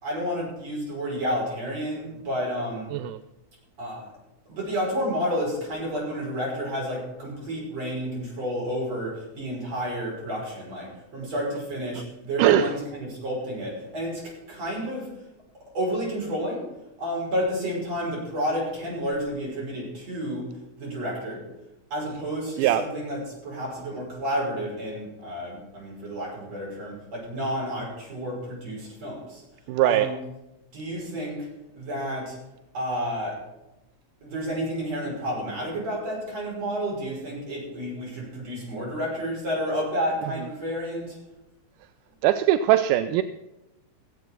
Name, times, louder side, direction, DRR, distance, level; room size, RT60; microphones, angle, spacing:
voice 1, 0.0-2.9 3.8-4.1 4.5-15.1 15.7-16.7 17.0-20.5 20.8-21.4 21.9-29.4 29.8-30.1 30.7-32.4 32.7-33.5 34.2-41.2, equal, 50° right, -3 dB, 6.8 m, -30 dB
voice 2, 12.4-12.7 22.6-22.8 29.7-30.1 42.2-43.2, right 13 dB, 85° right, 10 dB, 2.2 m, -20 dB
17.0 x 8.2 x 6.1 m, 0.94 s
omnidirectional pair, 3.6 m